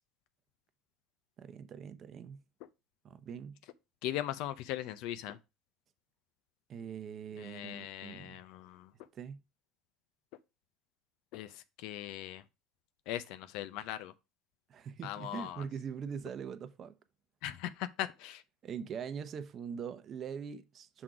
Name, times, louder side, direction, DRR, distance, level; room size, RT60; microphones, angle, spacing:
voice 1, 1.4-2.4 3.0-3.6 6.7-8.4 9.1-9.4 14.7-16.9 18.6-21.0, right 7 dB, 45° right, 0.7 m, -42 dB
voice 2, 4.0-5.4 7.4-8.9 11.3-11.5 11.8-12.4 13.1-14.1 15.0-15.6 17.4-18.4, left 12 dB, 70° left, 0.5 m, -39 dB
6.0 x 3.8 x 4.7 m
supercardioid pair, 100°, 0 cm